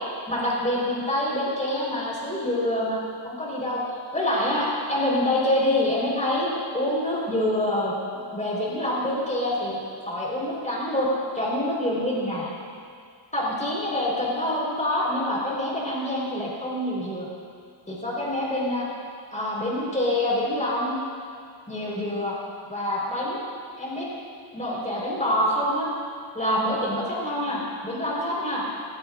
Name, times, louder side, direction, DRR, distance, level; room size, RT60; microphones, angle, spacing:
voice 1, 0.3-3.0 3.2-3.8 4.1-7.9 8.3-9.8 10.0-11.1 11.3-12.5 13.3-17.3 17.9-18.9 19.3-21.0 21.7-22.3 22.7-23.4 23.8-24.1 24.5-25.9 26.3-28.6, left 1 dB, 15° left, -5 dB, 4.7 m, -26 dB
20.5 x 19.5 x 2.6 m, 2.2 s
cardioid pair, 120°, 47 cm